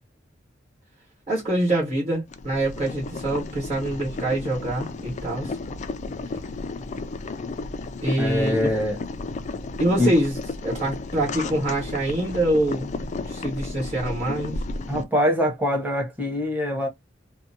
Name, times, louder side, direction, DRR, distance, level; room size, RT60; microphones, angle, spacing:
voice 1, 1.3-5.6 8.0-8.7 9.8-10.3 10.6-14.6, right 1 dB, 35° right, 1.2 m, -25 dB
Boiling, 2.3-15.0, left 3 dB, 40° left, 0.3 m, -33 dB
voice 2, 8.2-9.0 10.0-10.1 14.9-16.9, left 1 dB, 10° right, 0.9 m, -23 dB
2.6 x 2.2 x 2.7 m
head